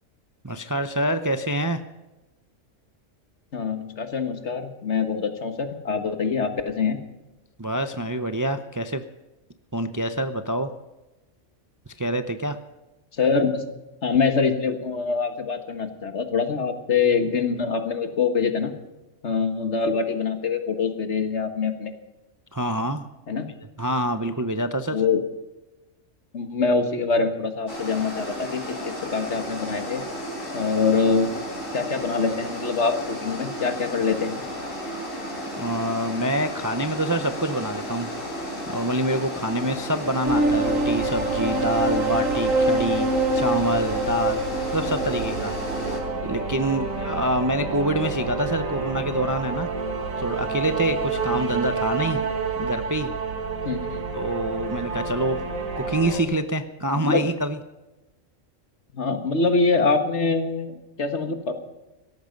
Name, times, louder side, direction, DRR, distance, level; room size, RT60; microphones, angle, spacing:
voice 1, 0.4-1.8 7.6-9.0 9.7-10.7 12.0-12.6 22.5-23.0 23.8-25.0 35.6-38.1 38.7-43.1 43.3-44.4 44.7-45.9 46.2-49.7 50.2-52.2 52.6-53.1 54.1-55.4 55.8-57.6, right 1 dB, 20° right, 9 dB, 0.6 m, -26 dB
voice 2, 3.5-7.0 13.2-13.6 14.0-18.7 19.2-21.9 23.3-23.5 24.9-25.2 26.3-28.7 29.1-30.0 30.5-31.3 31.7-34.4 53.7-54.1 57.0-57.3 58.9-61.5, left 4 dB, 60° left, 8 dB, 1.8 m, -24 dB
sound 1, 27.7-46.0, equal, 75° left, 4.3 m, -33 dB
sound 2, 40.2-56.2, right 3 dB, 85° right, 2.6 m, -27 dB
17.5 x 14.0 x 5.3 m, 1.1 s
omnidirectional pair, 1.4 m